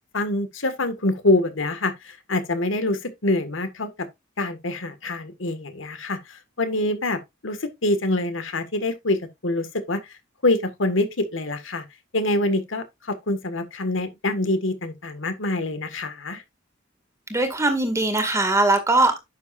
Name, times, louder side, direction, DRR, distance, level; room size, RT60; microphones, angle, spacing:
voice 1, 0.1-3.9 4.4-10.1 10.4-11.8 12.1-16.4, left 2 dB, 75° left, 1.7 m, -25 dB
voice 2, 17.3-19.2, right 2 dB, 15° right, 2.0 m, -20 dB
10.5 x 7.0 x 2.5 m
head